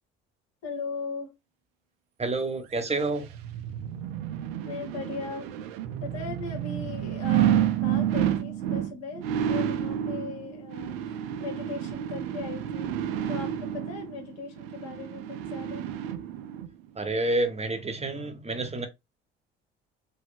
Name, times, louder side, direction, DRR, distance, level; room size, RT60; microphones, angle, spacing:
voice 1, 0.6-1.3 4.6-5.5 6.0-10.9 11.4-12.9 13.3-15.8, left 4 dB, 60° left, 1.4 m, -38 dB
voice 2, 2.2-3.3 17.0-18.9, right 2 dB, 20° right, 0.7 m, -28 dB
sound 1, 2.8-16.7 17.1-17.2, right 10 dB, 80° right, 0.5 m, -30 dB
3.1 x 2.1 x 3.3 m
hypercardioid pair, 60°, 29 cm